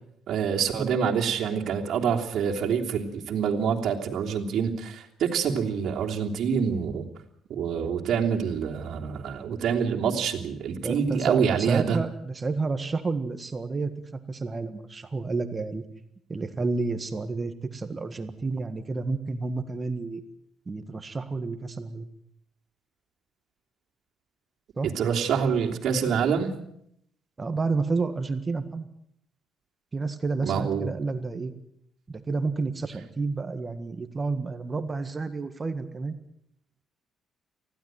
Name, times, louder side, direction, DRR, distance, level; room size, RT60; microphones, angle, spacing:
voice 1, 0.3-7.1 7.5-12.0 24.8-26.5 30.4-30.9, right 7 dB, 65° right, 1 dB, 3.2 m, -26 dB
voice 2, 10.8-13.9 14.3-15.8 16.3-20.2 20.7-22.1 24.8-24.9 27.4-28.9 29.9-31.5 32.1-36.2, right 3 dB, 25° right, 10 dB, 1.6 m, -30 dB
20.0 x 15.5 x 9.2 m, 0.74 s
cardioid pair, 120°, 0 cm